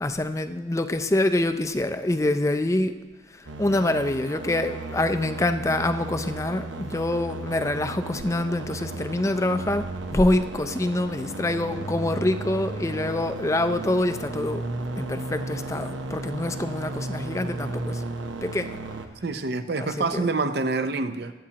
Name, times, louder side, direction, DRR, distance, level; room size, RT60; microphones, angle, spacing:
voice 1, 0.0-3.0 3.3-14.6 15.0-18.0 18.4-18.8 19.8-20.3, left 1 dB, 15° left, 9 dB, 0.4 m, -26 dB
sound 1, 3.5-19.1, right 2 dB, 85° right, 0.9 m, -34 dB
voice 2, 19.2-21.3, right 3 dB, 55° right, 10 dB, 0.6 m, -26 dB
21.5 x 8.5 x 2.9 m, 1.3 s
head